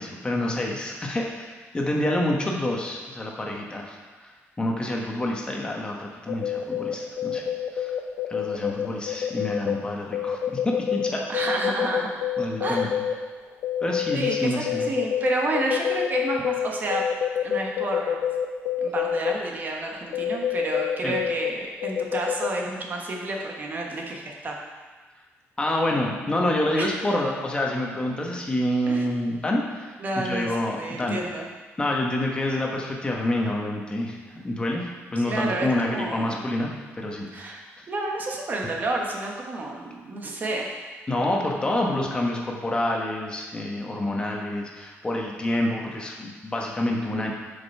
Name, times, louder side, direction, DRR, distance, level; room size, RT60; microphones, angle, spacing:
voice 1, 0.0-7.5 7.7-8.0 8.3-10.4 10.6-11.3 12.4-12.9 13.8-14.9 21.0-21.1 25.6-31.2 31.8-37.5 41.1-47.3, left 1 dB, 20° left, -1 dB, 1.3 m, -27 dB
sound 1, 6.3-9.8 10.1-13.1 13.6-19.3 20.1-21.5 21.8-22.5, left 9 dB, 85° left, 0.7 m, -26 dB
voice 2, 11.3-12.1 12.6-13.1 14.1-17.0 17.4-18.2 18.8-24.6 26.8-26.9 28.9-29.1 30.0-31.5 35.2-36.4 37.3-37.6 37.9-40.7, right 2 dB, 40° right, 0 dB, 1.2 m, -30 dB
7.7 x 5.3 x 5.6 m, 1.3 s
cardioid pair, 135°, 5 cm